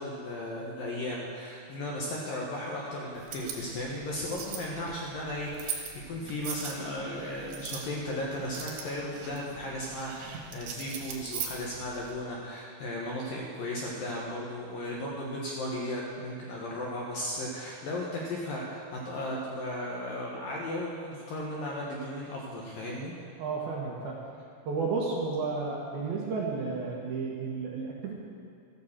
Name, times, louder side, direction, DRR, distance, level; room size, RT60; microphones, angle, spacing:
voice 1, 0.0-23.1, left 1 dB, 65° left, -3 dB, 2.4 m, -35 dB
sound 1, 3.2-12.1, right 7 dB, 85° right, 4.1 m, -41 dB
voice 2, 23.4-24.2 24.7-28.1, right 4 dB, 65° right, -3 dB, 2.8 m, -32 dB
14.0 x 9.5 x 7.4 m, 2.4 s
omnidirectional pair, 5.5 m